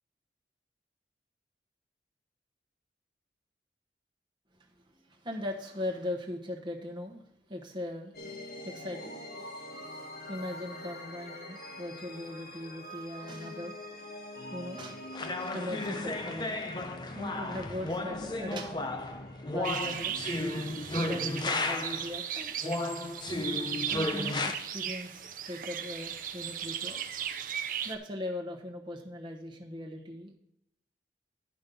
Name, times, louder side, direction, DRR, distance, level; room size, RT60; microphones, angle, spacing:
voice 1, 4.9-7.2 7.5-8.1 8.6-9.2 10.3-13.7 14.5-16.6 17.1-18.8 19.5-20.2 21.0-22.5 23.9-27.1 27.8-30.3, left 1 dB, 25° right, 0 dB, 1.1 m, -39 dB
sound 1, 8.1-20.8, left 1 dB, 55° left, 1.5 m, -45 dB
sound 2, 15.1-22.1 22.6-24.5, left 2 dB, 25° left, 0.6 m, -34 dB
sound 3, 19.6-28.0, right 8 dB, 50° right, 0.6 m, -37 dB
10.5 x 5.4 x 5.4 m, 0.80 s
head